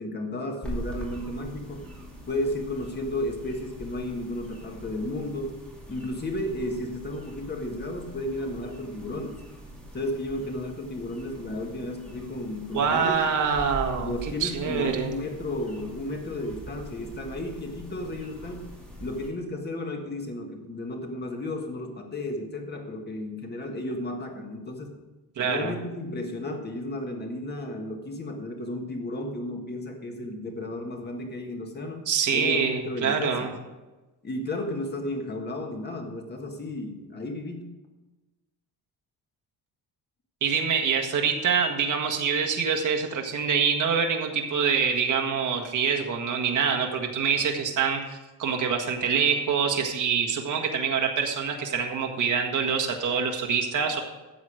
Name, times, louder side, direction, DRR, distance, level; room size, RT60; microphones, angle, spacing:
voice 1, 0.0-1.9 2.3-5.6 5.9-9.4 9.9-13.2 13.9-18.7 19.0-24.9 25.4-32.1 32.3-33.5 34.2-37.6, left 1 dB, 25° left, 3 dB, 1.7 m, -33 dB
sound 1, 0.6-19.3, right 1 dB, 5° left, 2.3 m, -42 dB
voice 2, 12.7-15.1 25.4-25.7 32.1-33.5 40.4-54.0, right 6 dB, 50° right, 3 dB, 1.7 m, -25 dB
13.5 x 8.0 x 5.0 m, 1.1 s
cardioid pair, 155°, 38 cm